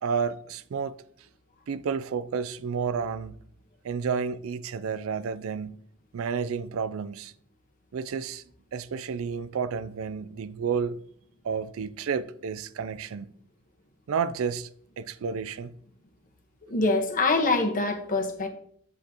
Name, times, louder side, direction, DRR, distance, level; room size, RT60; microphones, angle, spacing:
voice 1, 0.0-1.0 1.7-3.3 3.8-5.8 6.1-7.3 7.9-8.4 8.7-11.0 11.4-13.3 14.1-14.7 15.0-15.7, right 6 dB, 70° right, 0.4 m, -31 dB
voice 2, 16.7-18.5, left 3 dB, 40° left, 1.2 m, -24 dB
8.1 x 7.9 x 2.9 m
head